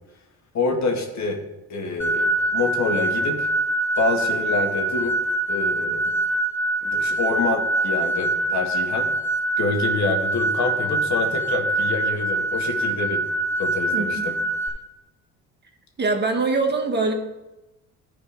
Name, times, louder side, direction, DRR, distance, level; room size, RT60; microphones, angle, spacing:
voice 1, 0.5-1.4 1.7-3.5 4.0-5.1 5.5-6.2 6.8-9.1 9.6-13.2 13.6-14.3, left 3 dB, 55° left, 3 dB, 1.8 m, -26 dB
sound 1, 2.0-14.7, right 2 dB, 5° left, 3.0 m, -24 dB
voice 2, 13.9-14.3 16.0-17.1, right 3 dB, 30° right, 3 dB, 1.5 m, -23 dB
12.0 x 4.4 x 5.1 m, 0.98 s
supercardioid pair, 85°, 33 cm